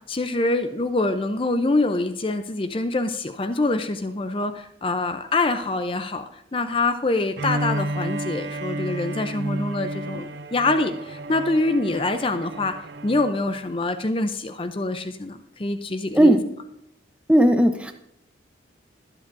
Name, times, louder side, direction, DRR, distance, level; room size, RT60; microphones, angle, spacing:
voice 1, 0.1-6.2 6.5-12.7 13.0-16.4, left 2 dB, 30° left, 9 dB, 0.6 m, -25 dB
Bowed string instrument, 7.3-13.4, right 1 dB, 65° right, 0.5 m, -31 dB
voice 2, 17.3-17.9, right 1 dB, 5° right, 6 dB, 0.8 m, -16 dB
22.0 x 8.0 x 2.6 m, 0.75 s
head